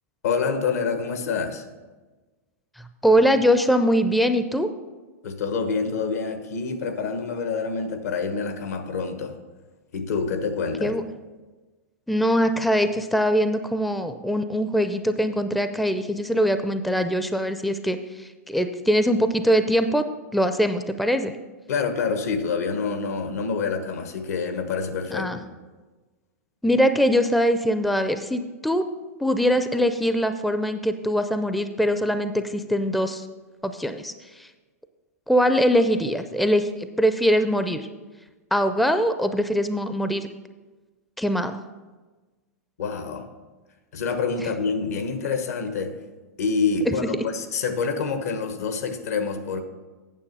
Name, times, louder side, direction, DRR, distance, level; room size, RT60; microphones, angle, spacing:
voice 1, 0.2-1.6 5.2-9.3 9.9-10.9 21.7-25.4 42.8-43.3 43.9-45.9 46.4-49.6, left 5 dB, 75° left, 7 dB, 1.3 m, -27 dB
voice 2, 2.8-4.7 10.8-11.0 12.1-20.0 20.3-21.3 25.1-25.4 26.6-28.8 29.2-33.3 33.6-34.1 34.4-34.5 35.3-37.9 38.5-40.3 41.2-41.6 46.9-47.0, equal, ahead, 8 dB, 0.4 m, -22 dB
9.1 x 6.9 x 5.5 m, 1.2 s
hypercardioid pair, 115°, 8 cm